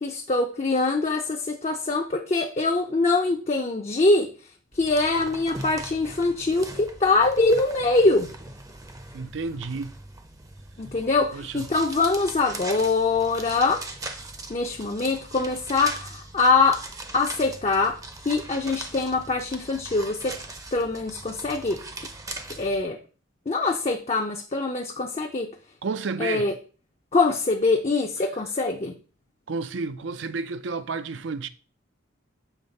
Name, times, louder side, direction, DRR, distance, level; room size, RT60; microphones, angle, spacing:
voice 1, 0.0-4.3 4.8-8.3 10.8-13.8 14.5-16.8 17.1-18.0 18.2-20.4 20.7-21.8 22.6-23.0 23.5-25.5 26.2-26.5 27.1-28.9, left 3 dB, 35° left, 0.5 m, -23 dB
sound 1, 4.7-22.8, right 2 dB, 15° right, 0.6 m, -40 dB
voice 2, 9.1-9.9 11.3-11.7 25.8-26.5 29.5-31.5, right 4 dB, 65° right, 0.5 m, -31 dB
7.2 x 3.1 x 5.3 m
head